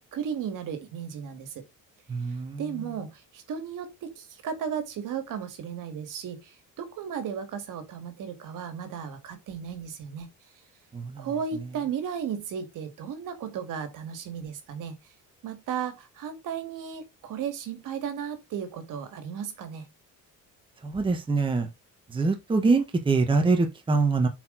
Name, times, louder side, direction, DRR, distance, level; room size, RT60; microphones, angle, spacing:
voice 1, 0.0-1.6 2.6-10.3 11.2-15.0 15.4-19.9, right 7 dB, 65° right, 1.9 m, -35 dB
voice 2, 2.1-2.6 10.9-11.3 20.8-21.7 22.1-24.3, right 3 dB, 15° right, 1.1 m, -24 dB
8.1 x 4.6 x 3.8 m
cardioid pair, 155°, 34 cm